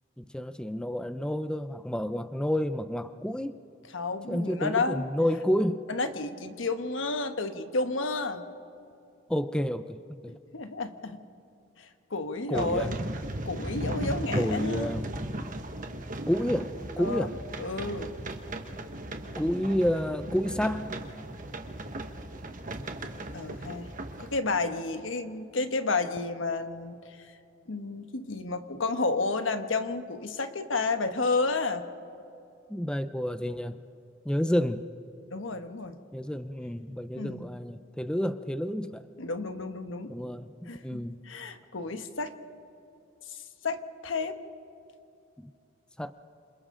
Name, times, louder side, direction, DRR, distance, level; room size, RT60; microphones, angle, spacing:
voice 1, 0.2-3.6 4.3-5.8 9.3-10.3 12.5-12.9 14.3-15.1 16.3-17.4 19.4-20.9 32.7-33.8 34.3-34.8 36.1-39.0 40.1-41.2 45.4-45.5 46.0-46.1, equal, 5° left, 11 dB, 0.5 m, -30 dB
voice 2, 3.9-5.0 5.9-8.4 10.5-11.2 11.8-13.0 13.4-14.9 17.0-17.3 17.6-18.1 23.3-23.9 24.2-27.3 27.7-31.8 35.3-36.0 37.2-37.5 39.2-40.1 40.7-41.0 41.2-42.3 43.3-44.4, left 3 dB, 80° left, 8 dB, 1.2 m, -31 dB
sound 1, 12.5-24.4, right 1 dB, 45° right, 1.4 m, -36 dB
28.0 x 26.5 x 3.8 m, 2.6 s
head